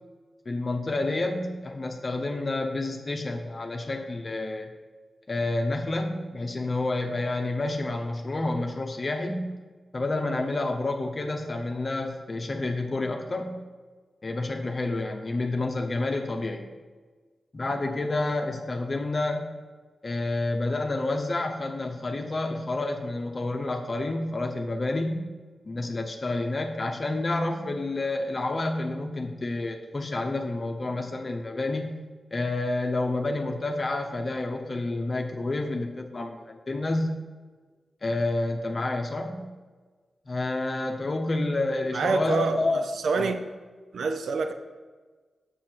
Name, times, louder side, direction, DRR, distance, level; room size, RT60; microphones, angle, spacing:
voice 1, 0.5-4.7 5.3-9.5 9.9-13.6 14.2-16.7 17.5-19.5 20.0-25.3 25.6-32.0 32.3-37.2 38.0-39.5 40.3-42.8 43.1-43.4, left 2 dB, 45° left, 0.8 m, -29 dB
voice 2, 41.9-43.5 43.9-44.5, right 4 dB, 85° right, 0.5 m, -27 dB
7.5 x 7.0 x 4.5 m
cardioid pair, 55°, 0 cm